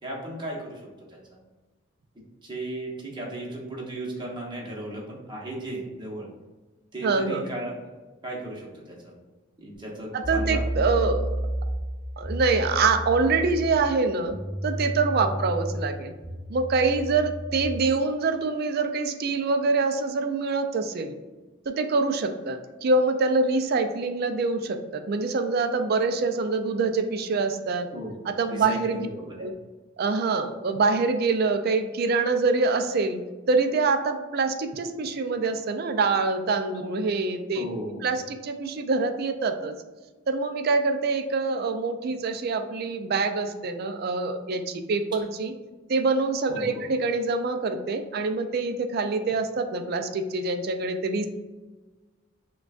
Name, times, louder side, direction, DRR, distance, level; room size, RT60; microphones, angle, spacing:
voice 1, 0.0-1.4 2.4-6.3 6.9-7.9 8.2-9.1 9.6-11.1 15.2-15.3 27.9-28.2 28.5-29.4 37.5-38.0 46.5-46.9, right 1 dB, 25° right, -3 dB, 0.9 m, -36 dB
voice 2, 7.0-7.4 10.1-11.3 12.2-14.4 14.6-16.1 16.5-21.2 21.7-27.9 28.3-29.1 29.4-29.5 30.0-33.2 33.5-37.6 38.0-39.8 40.3-45.5 45.9-51.3, right 3 dB, 50° right, 7 dB, 0.4 m, -25 dB
sound 1, 9.7-9.8 10.2-17.7, equal, 15° left, 1.1 m, -32 dB
6.0 x 2.3 x 2.4 m, 1.2 s
head